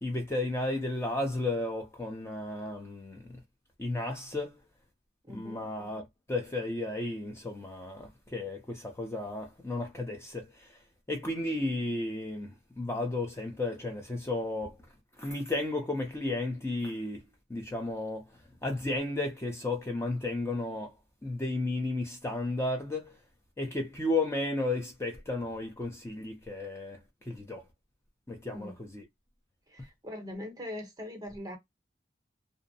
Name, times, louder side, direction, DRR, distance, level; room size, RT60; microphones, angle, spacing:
voice 1, 0.0-3.4 3.8-4.6 5.3-6.0 6.3-14.8 15.2-17.2 17.5-21.0 21.2-23.2 23.6-27.6 28.3-29.0, left 2 dB, 15° left, 0.5 m, -33 dB
voice 2, 5.2-5.7 28.5-28.7 29.7-31.6, left 1 dB, 20° right, 0.8 m, -41 dB
2.6 x 2.0 x 2.6 m
head